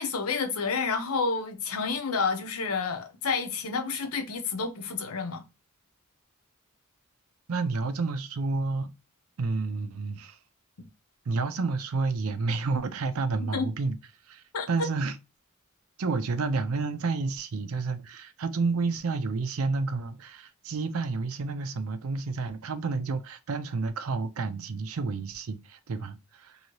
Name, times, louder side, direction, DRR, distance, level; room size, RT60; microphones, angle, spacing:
voice 1, 0.0-5.4 10.8-10.9 13.4-13.7 14.5-14.9, left 4 dB, 90° left, 0.7 m, -30 dB
voice 2, 7.5-8.9 9.4-10.4 11.3-14.0 14.3-15.1 16.0-26.6, right 4 dB, 75° right, 0.5 m, -30 dB
2.7 x 2.7 x 2.9 m
head